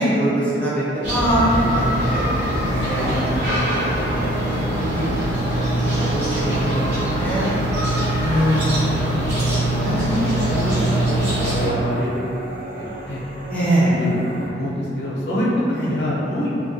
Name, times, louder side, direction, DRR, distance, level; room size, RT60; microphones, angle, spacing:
voice 1, 0.0-1.4 1.7-2.5 2.8-4.6 4.9-5.7 6.1-6.8 7.1-7.5 8.2-8.9 13.5-14.0 15.7-16.0, right 1 dB, 10° left, -9 dB, 0.5 m, -23 dB
sound 1, 0.8-14.5, equal, 40° right, 0.8 m, -34 dB
sound 2, 1.0-11.7, right 1 dB, 75° right, 0.7 m, -22 dB
voice 2, 8.3-12.1 12.5-13.2 13.6-13.7 14.0-14.1 14.4-16.5, equal, 70° left, -6 dB, 0.5 m, -27 dB
2.3 x 2.1 x 2.6 m, 2.8 s
head